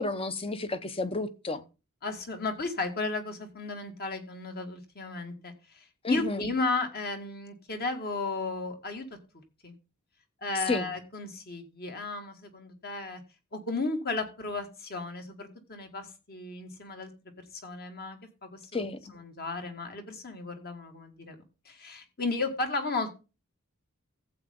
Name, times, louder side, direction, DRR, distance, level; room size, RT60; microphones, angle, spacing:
voice 1, 0.0-1.6 6.0-6.4 10.7-10.9 18.7-19.0, left 3 dB, 25° left, 0.8 m, -31 dB
voice 2, 2.0-9.1 9.6-9.7 10.4-13.2 13.5-17.1 17.6-18.8 19.1-23.1, left 3 dB, 45° left, 1.9 m, -34 dB
14.5 x 7.8 x 3.7 m
head